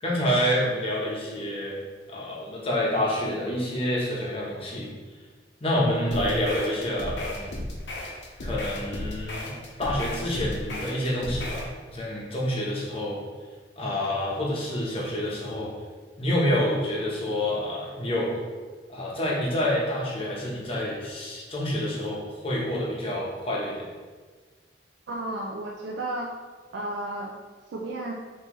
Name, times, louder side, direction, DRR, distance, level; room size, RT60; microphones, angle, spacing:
voice 1, 0.0-4.9 5.6-7.6 8.4-9.5 9.8-13.2 13.8-15.7 16.2-18.4 18.9-23.9, left 1 dB, 30° left, -4 dB, 0.9 m, -28 dB
sound 1, 6.1-11.7, left 1 dB, 80° left, 0.8 m, -34 dB
voice 2, 25.1-26.3 26.7-27.3 27.7-28.1, right 1 dB, 80° right, 0 dB, 0.4 m, -32 dB
5.3 x 2.8 x 3.0 m, 1.4 s
head